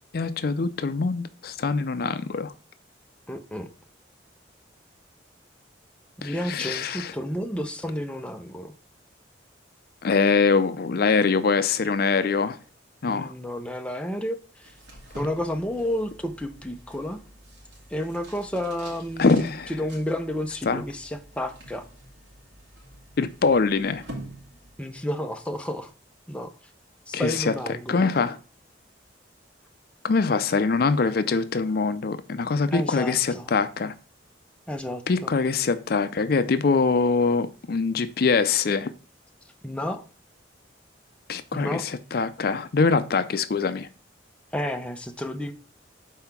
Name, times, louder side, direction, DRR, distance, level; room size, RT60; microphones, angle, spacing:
voice 1, 0.1-2.5 6.2-7.1 10.0-12.6 13.0-13.3 19.2-19.7 20.7-20.8 23.2-24.0 27.1-27.5 27.9-28.4 30.0-33.9 35.1-38.9 41.3-43.9, left 4 dB, 55° left, 0.4 m, -23 dB
voice 2, 3.3-3.7 6.2-8.7 13.1-14.7 15.1-17.2 17.9-21.9 24.8-25.9 26.3-26.5 27.1-28.1 32.7-33.5 34.7-35.3 39.6-40.0 41.5-41.8 44.5-45.5, left 1 dB, 5° left, 0.5 m, -31 dB
sound 1, 14.6-25.1, right 1 dB, 75° right, 2.3 m, -46 dB
5.6 x 4.5 x 5.8 m
head